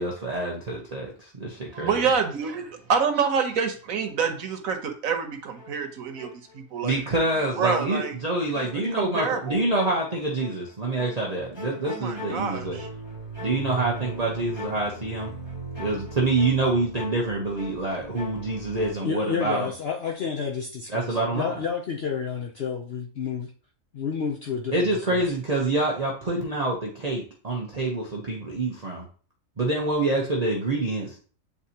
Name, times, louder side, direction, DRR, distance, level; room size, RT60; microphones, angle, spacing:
voice 1, 0.0-1.5 1.8-2.0 6.8-12.8 13.4-15.3 15.8-19.7 20.9-21.6 24.7-29.1 29.6-31.1, right 2 dB, 30° right, -3 dB, 1.0 m, -26 dB
voice 2, 1.8-7.0 7.6-8.1 8.6-9.6 11.8-12.9, right 6 dB, 90° right, 6 dB, 1.4 m, -27 dB
sound 1, 5.6-7.0 7.4-18.9, equal, 20° left, 2.4 m, -40 dB
voice 3, 19.0-23.5 23.9-25.2, left 6 dB, 55° left, 1 dB, 0.8 m, -30 dB
8.3 x 4.0 x 2.9 m, 0.41 s
omnidirectional pair, 1.4 m